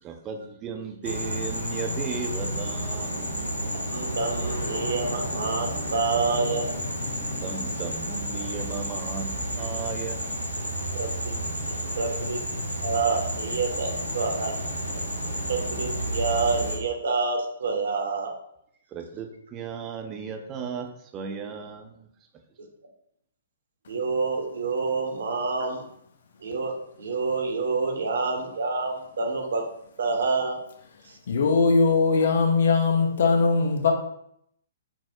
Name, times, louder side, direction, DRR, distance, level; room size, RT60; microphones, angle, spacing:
voice 1, 0.0-3.3 7.4-10.3 11.8-12.1 18.9-22.1, right 6 dB, 20° right, 3 dB, 0.4 m, -36 dB
sound 1, 1.0-16.8, equal, 85° left, 0.9 m, -31 dB
voice 2, 3.9-6.7 10.9-11.3 11.7-12.4 12.8-14.5 14.9-15.0 15.5-18.3 23.9-25.8 26.4-29.6 30.0-30.6 31.0-31.2, right 4 dB, 60° right, 2 dB, 0.7 m, -28 dB
voice 3, 31.3-33.9, left 4 dB, 55° left, 3 dB, 0.6 m, -20 dB
5.9 x 2.0 x 2.6 m, 0.72 s
figure-of-eight pair, 120°, 0 cm